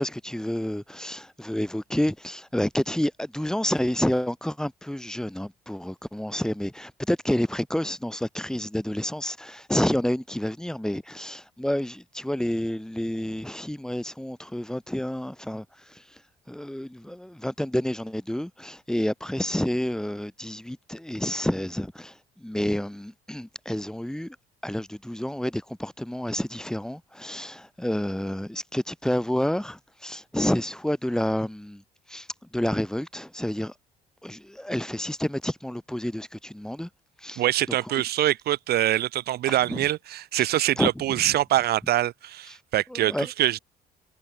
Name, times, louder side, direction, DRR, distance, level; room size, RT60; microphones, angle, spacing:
voice 1, 0.0-16.0 16.5-24.4 24.6-31.8 32.1-32.3 32.5-33.7 34.2-36.9 37.2-37.4 39.5-39.8 40.4-40.5 40.8-41.4 42.9-43.3, left 1 dB, 5° left, 3.5 m, -29 dB
voice 2, 37.4-43.6, right 13 dB, 70° right, 3.8 m, -24 dB
cardioid pair, 110°, 17 cm